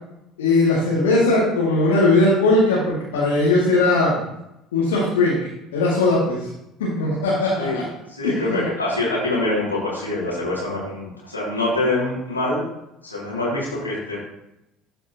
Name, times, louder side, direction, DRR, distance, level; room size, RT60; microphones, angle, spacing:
voice 1, 0.4-4.2 4.7-5.4 5.7-6.5 6.8-7.8 8.2-8.6, left 2 dB, 75° left, -8 dB, 2.3 m, -19 dB
voice 2, 8.1-12.6 13.0-14.2, left 2 dB, 90° left, -7 dB, 3.0 m, -25 dB
12.5 x 5.2 x 3.0 m, 0.85 s
figure-of-eight pair, 60°, 0 cm